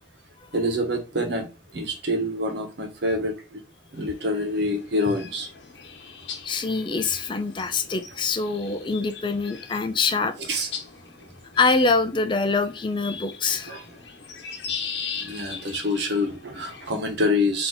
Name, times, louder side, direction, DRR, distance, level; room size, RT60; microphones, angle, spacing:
voice 1, 0.5-1.5 1.7-3.6 3.9-5.5 10.5-10.7 13.7-13.8 15.2-17.7, left 1 dB, 75° right, 1.2 m, -26 dB
sound 1, 3.9-17.0, left 6 dB, 85° left, 0.9 m, -40 dB
voice 2, 6.4-10.3 11.6-13.7, left 4 dB, 25° left, 0.4 m, -24 dB
3.9 x 2.8 x 3.9 m
head